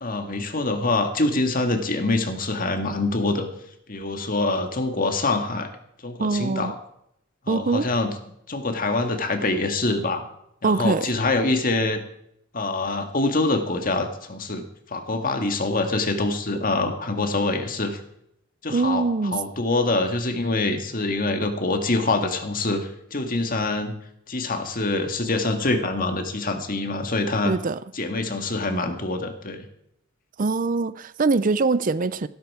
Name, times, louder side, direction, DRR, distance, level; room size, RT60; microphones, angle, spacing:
voice 1, 0.0-3.5 3.9-5.7 6.0-6.8 7.5-8.1 8.5-10.3 10.6-12.0 12.5-14.6 14.9-18.0 18.6-19.0 19.3-23.9 24.3-27.5 27.9-29.7, left 2 dB, 45° left, 1.9 m, -25 dB
voice 2, 6.2-6.7 7.5-7.9 10.6-11.1 18.7-19.4 27.4-27.8 30.4-32.3, right 3 dB, 45° right, 0.5 m, -23 dB
15.0 x 13.0 x 4.8 m
head